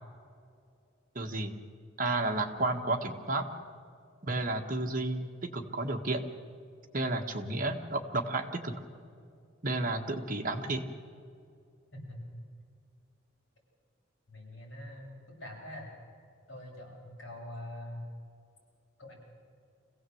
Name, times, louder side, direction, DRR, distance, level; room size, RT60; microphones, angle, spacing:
voice 1, 1.1-1.6 2.0-3.5 4.2-6.2 6.9-8.8 9.6-10.9, right 2 dB, 40° right, 3 dB, 1.6 m, -32 dB
voice 2, 11.9-12.4 14.3-15.9 16.5-18.0 19.0-19.1, left 1 dB, 65° left, -3 dB, 7.7 m, -44 dB
25.5 x 17.0 x 7.9 m, 2.4 s
head